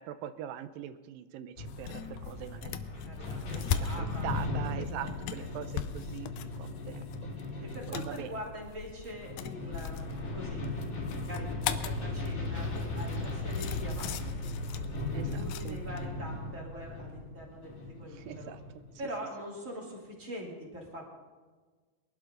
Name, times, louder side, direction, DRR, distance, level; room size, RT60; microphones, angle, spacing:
voice 1, 0.0-3.7 4.0-7.1 7.9-8.3 15.1-15.8 18.1-18.6, right 10 dB, 80° right, 12 dB, 2.3 m, -42 dB
sound 1, 1.6-19.1, left 2 dB, 55° left, 4.2 m, -37 dB
sound 2, 1.7-16.0, left 10 dB, 80° left, 1.8 m, -40 dB
voice 2, 3.0-5.1 5.4-5.6 7.6-10.7 10.9-11.5 11.8-14.5 15.3-18.5 19.0-21.0, equal, 20° right, -2 dB, 2.9 m, -44 dB
22.5 x 12.0 x 3.9 m, 1.4 s
omnidirectional pair, 4.2 m